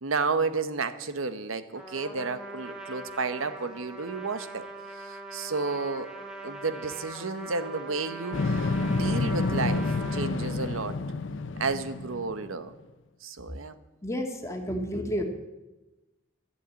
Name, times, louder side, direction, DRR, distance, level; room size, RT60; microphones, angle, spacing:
voice 1, 0.0-4.7 5.0-6.1 6.4-10.9 11.6-12.7 13.2-13.8, right 4 dB, 90° right, 12 dB, 1.0 m, -32 dB
Trumpet, 1.7-10.3, right 2 dB, 5° right, 2.0 m, -41 dB
sound 1, 8.3-12.5, left 3 dB, 70° left, 0.6 m, -29 dB
voice 2, 14.0-15.2, equal, 15° left, 3 dB, 1.7 m, -31 dB
12.0 x 11.5 x 8.7 m, 1.1 s
head